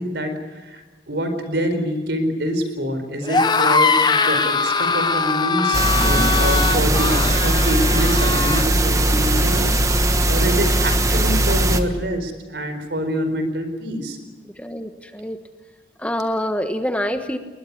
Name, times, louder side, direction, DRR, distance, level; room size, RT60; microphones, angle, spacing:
voice 1, 0.0-14.2, equal, 75° right, 9 dB, 4.5 m, -26 dB
sound 1, 3.2-8.7, left 4 dB, 25° left, 0.9 m, -21 dB
sound 2, 5.7-11.8, right 1 dB, 20° right, 1.3 m, -19 dB
voice 2, 6.0-6.3 14.6-15.4 16.0-17.4, equal, 10° left, 7 dB, 1.3 m, -26 dB
21.0 x 20.5 x 9.7 m, 1.2 s
head